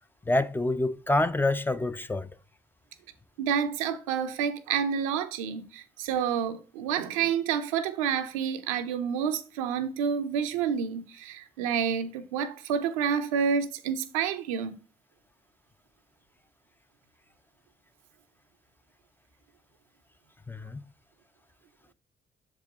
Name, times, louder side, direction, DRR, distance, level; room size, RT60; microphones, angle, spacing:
voice 1, 0.3-2.3 20.5-20.8, left 2 dB, 10° left, 0.4 m, -27 dB
voice 2, 3.4-14.8, right 7 dB, 80° right, 0.5 m, -29 dB
6.5 x 4.9 x 3.5 m
hypercardioid pair, 50°, 17 cm